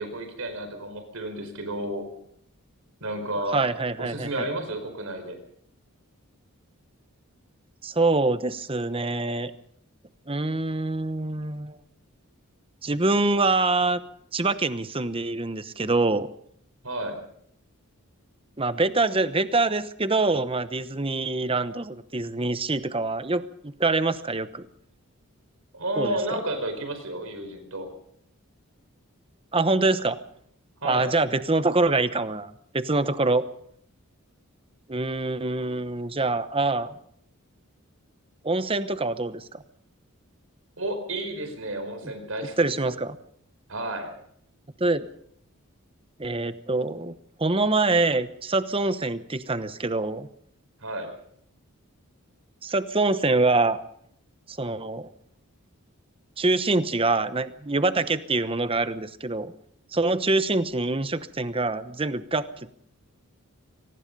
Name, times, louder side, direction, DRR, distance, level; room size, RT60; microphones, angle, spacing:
voice 1, 0.0-2.1 3.0-3.6 4.0-5.4 16.8-17.2 25.7-27.9 30.8-31.1 40.8-43.0 43.7-44.1 50.8-51.1, right 1 dB, 70° right, 7 dB, 5.0 m, -32 dB
voice 2, 3.5-4.5 7.8-9.5 10.3-11.8 12.8-14.0 14.3-16.3 18.6-24.7 26.0-26.4 29.5-30.2 30.8-33.4 34.9-36.9 38.4-39.6 42.6-43.2 44.8-45.1 46.2-50.3 52.6-53.8 54.5-55.1 56.4-59.5 59.9-62.7, right 3 dB, 25° right, 12 dB, 1.0 m, -25 dB
25.5 x 19.0 x 5.4 m, 0.69 s
head